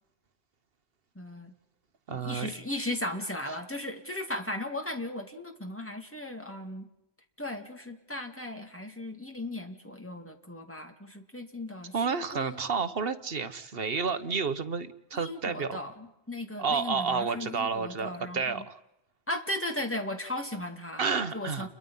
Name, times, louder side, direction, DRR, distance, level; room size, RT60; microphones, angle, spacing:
voice 1, 1.2-1.5 2.1-6.9 7.4-12.6 15.1-18.6 19.3-21.0 21.3-21.7, left 1 dB, 10° left, 4 dB, 2.4 m, -36 dB
voice 2, 2.1-2.5 11.9-15.8 16.6-18.8 21.0-21.7, right 5 dB, 60° right, 10 dB, 1.4 m, -30 dB
30.0 x 22.5 x 5.6 m, 0.87 s
omnidirectional pair, 1.1 m